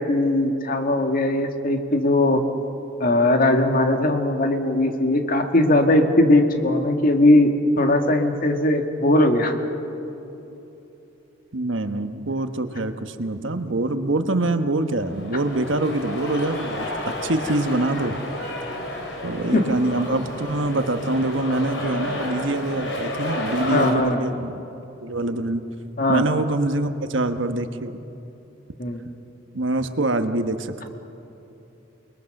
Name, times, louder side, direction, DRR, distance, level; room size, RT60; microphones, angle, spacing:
voice 1, 0.0-2.4 3.0-7.5 7.8-9.6 19.5-19.6 23.7-24.3 26.0-26.2 28.8-29.0, left 1 dB, 50° left, 5 dB, 2.0 m, -19 dB
voice 2, 11.5-18.2 19.2-24.6 25.0-25.6 26.1-28.0 29.5-30.9, right 2 dB, 75° right, 8 dB, 1.3 m, -25 dB
sound 1, 14.9-23.9, left 1 dB, 70° left, 4.2 m, -31 dB
29.0 x 21.0 x 6.6 m, 3.0 s
head